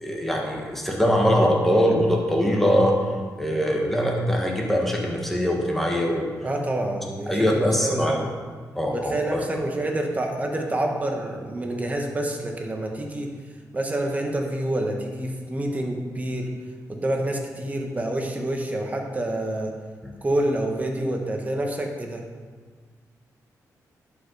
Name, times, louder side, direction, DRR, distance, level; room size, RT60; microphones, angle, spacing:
voice 1, 0.0-3.0 3.4-6.3 7.3-8.2 8.8-9.5 20.0-20.1, equal, 5° left, -1 dB, 1.7 m, -22 dB
voice 2, 6.4-8.3 8.9-13.3 13.7-16.5 16.9-19.7 20.2-22.2, right 1 dB, 25° right, 2 dB, 1.3 m, -27 dB
11.0 x 5.4 x 4.9 m, 1.5 s
cardioid pair, 100°, 6 cm